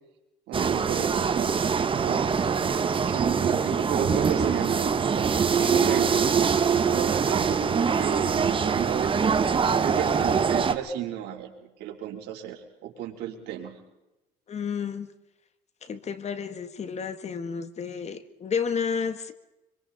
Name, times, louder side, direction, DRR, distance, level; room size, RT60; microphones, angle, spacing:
sound 1, 0.5-10.7, right 6 dB, 30° right, 1.3 m, -24 dB
voice 1, 0.5-1.6 1.9-2.2 2.7-4.8 5.8-6.2 6.8-9.2 9.8-13.8, right 10 dB, 80° right, 1 dB, 3.6 m, -33 dB
voice 2, 5.5-5.9 14.5-15.1 15.8-19.3, left 6 dB, 40° left, 11 dB, 1.6 m, -31 dB
25.5 x 24.5 x 4.1 m, 0.98 s
cardioid pair, 110°, 17 cm